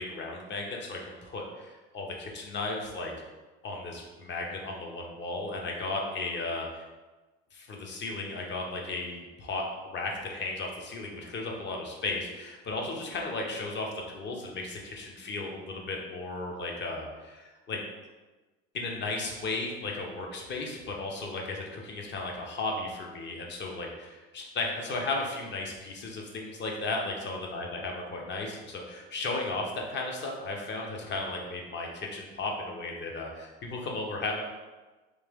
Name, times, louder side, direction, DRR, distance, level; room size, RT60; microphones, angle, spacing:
voice 1, 0.0-3.1 3.6-6.8 7.5-9.6 9.9-17.8 18.7-34.4, left 3 dB, 35° left, 0 dB, 0.9 m, -35 dB
3.2 x 3.0 x 3.5 m, 1.2 s
supercardioid pair, 90°, 31 cm